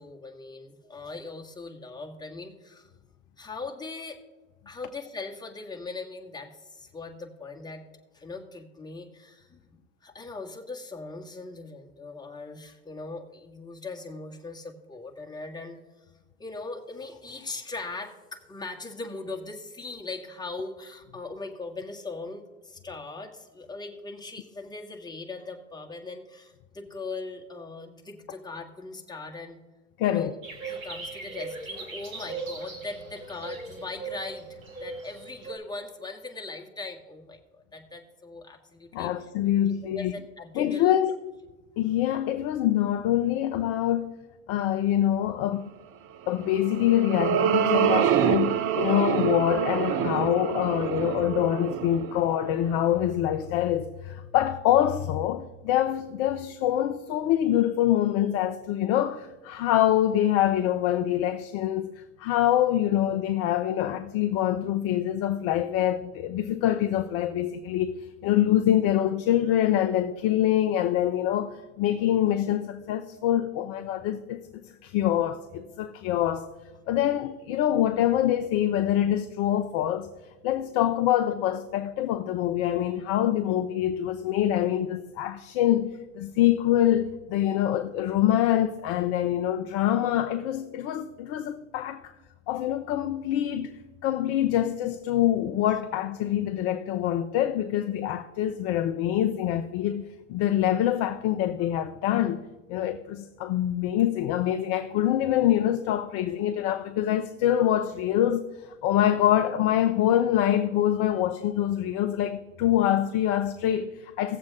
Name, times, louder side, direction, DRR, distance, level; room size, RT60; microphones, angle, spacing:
voice 1, 0.0-2.9 3.4-4.2 4.6-7.8 8.1-15.8 16.4-29.6 30.0-30.4 30.6-39.3 39.7-41.0, left 3 dB, 10° left, 1.7 m, -40 dB
voice 2, 30.0-30.3 38.9-40.1 40.6-41.2 41.8-44.1 44.5-45.7 46.3-68.0 68.2-76.5 76.9-80.1 80.4-92.1 92.5-93.7 94.0-102.4 102.7-114.4, left 11 dB, 35° left, 0.6 m, -25 dB
sound 1, 30.4-35.5, right 3 dB, 80° right, 2.1 m, -38 dB
sound 2, 46.5-53.0, right 9 dB, 30° right, 0.6 m, -26 dB
17.5 x 7.4 x 3.7 m
hypercardioid pair, 95°, 41 cm